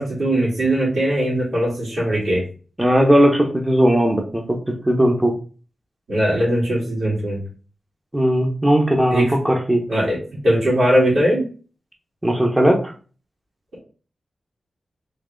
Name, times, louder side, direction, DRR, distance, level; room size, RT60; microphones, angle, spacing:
voice 1, 0.0-2.4 6.1-7.4 9.1-9.2 9.9-10.2 10.4-11.4, right 1 dB, 80° right, -10 dB, 1.9 m, -19 dB
voice 2, 2.8-5.3 8.1-9.8 12.2-12.9, equal, 10° right, 1 dB, 0.7 m, -17 dB
3.2 x 2.9 x 3.7 m, 0.38 s
wide cardioid pair, 100°, 0 cm